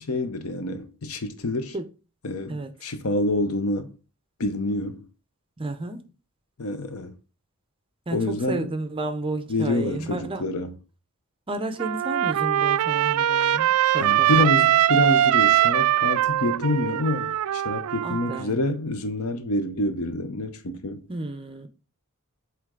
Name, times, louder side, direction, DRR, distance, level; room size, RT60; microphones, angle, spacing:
voice 1, 0.0-1.7 2.2-3.9 4.4-5.0 6.6-7.1 8.1-8.7 9.5-10.7 14.0-21.0, left 2 dB, 70° left, 0.8 m, -27 dB
voice 2, 5.6-6.0 8.1-10.4 11.5-14.5 18.0-18.6 21.1-21.7, right 2 dB, 25° right, 0.6 m, -32 dB
Trumpet, 11.8-18.4, right 12 dB, 70° right, 0.3 m, -22 dB
7.9 x 3.2 x 3.7 m
head